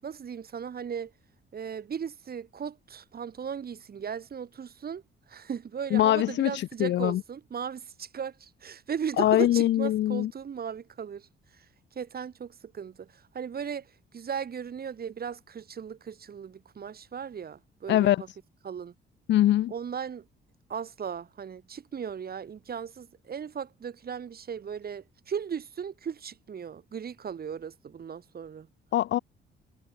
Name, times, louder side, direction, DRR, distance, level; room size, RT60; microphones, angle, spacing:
voice 1, 0.0-1.1 1.5-5.0 5.3-11.3 11.6-11.7 11.9-13.9 14.1-18.3 18.6-18.9 19.7-20.2 20.7-28.7, right 7 dB, 50° right, 6.4 m, -37 dB
voice 2, 5.9-7.2 9.2-10.3 17.9-18.2 19.3-19.7 28.9-29.2, left 13 dB, 65° left, 0.5 m, -23 dB
cardioid pair, 90°, 20 cm